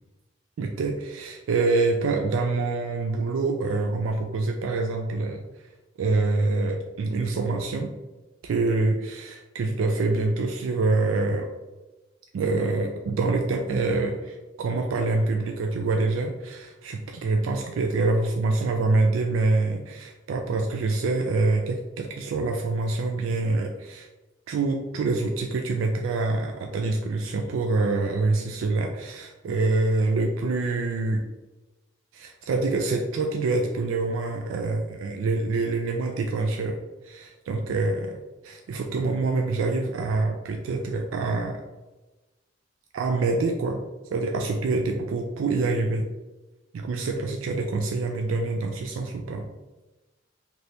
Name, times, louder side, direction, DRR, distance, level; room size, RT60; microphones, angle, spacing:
voice 1, 0.6-5.4 6.0-7.9 8.4-11.5 12.3-24.1 24.5-31.2 32.1-36.8 37.0-38.2 38.4-41.6 42.9-43.8 44.1-46.0 46.7-49.4, right 3 dB, 80° right, 3 dB, 0.3 m, -26 dB
2.8 x 2.7 x 3.2 m, 1.1 s
head